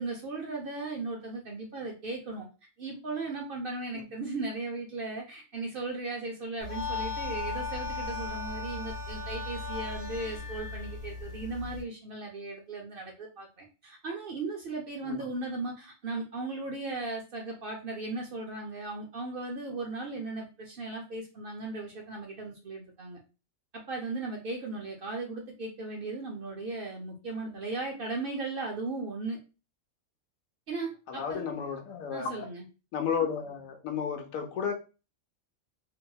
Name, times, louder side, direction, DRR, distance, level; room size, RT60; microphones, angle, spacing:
voice 1, 0.0-2.5 2.8-23.2 23.7-29.4 30.7-31.4 32.1-32.7, right 3 dB, 60° right, 0.6 m, -37 dB
sound 1, 6.6-11.8, left 3 dB, 55° left, 0.9 m, -36 dB
voice 2, 31.1-32.5 32.9-34.7, left 7 dB, 80° left, 1.0 m, -33 dB
2.7 x 2.6 x 2.3 m
omnidirectional pair, 1.4 m